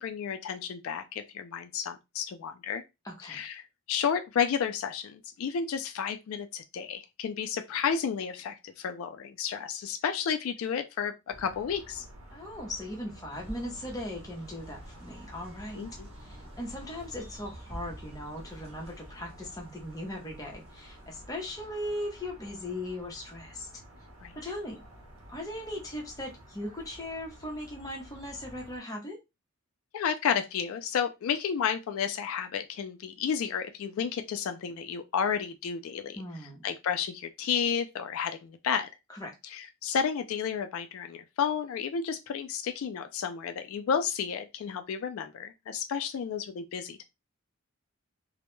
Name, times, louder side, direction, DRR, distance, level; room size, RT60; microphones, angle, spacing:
voice 1, 0.0-2.8 3.2-12.1 15.7-16.1 24.2-24.4 29.9-36.2 36.6-38.9 39.5-47.0, left 7 dB, 75° left, 0.3 m, -32 dB
voice 2, 3.0-3.4 12.3-15.8 16.2-23.7 24.4-24.8 25.3-29.2 36.2-36.6 39.1-39.3, left 1 dB, 15° left, 0.6 m, -38 dB
sound 1, 11.3-28.8, right 1 dB, 70° right, 0.7 m, -51 dB
sound 2, 13.3-21.3, equal, 25° right, 0.6 m, -49 dB
2.2 x 2.0 x 3.0 m
head